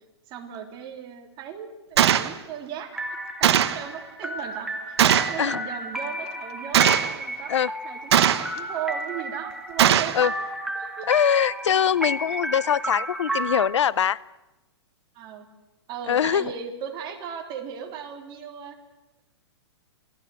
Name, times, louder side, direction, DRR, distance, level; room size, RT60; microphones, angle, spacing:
voice 1, 0.3-10.2 10.7-11.1 15.1-15.5 15.9-18.8, right 8 dB, 30° right, 3 dB, 3.5 m, -37 dB
Gunshot gunfire, 2.0-2.3 3.4-3.8 5.0-5.4 6.7-7.1 8.1-8.6 9.8-10.2, right 10 dB, 65° right, 1.4 m, -19 dB
sound 1, 2.9-13.7, right 1 dB, 5° right, 2.4 m, -32 dB
voice 2, 11.1-14.2 16.1-16.4, left 8 dB, 90° left, 21 dB, 0.7 m, -22 dB
28.0 x 18.5 x 7.8 m, 1.0 s
hypercardioid pair, 150°, 15 cm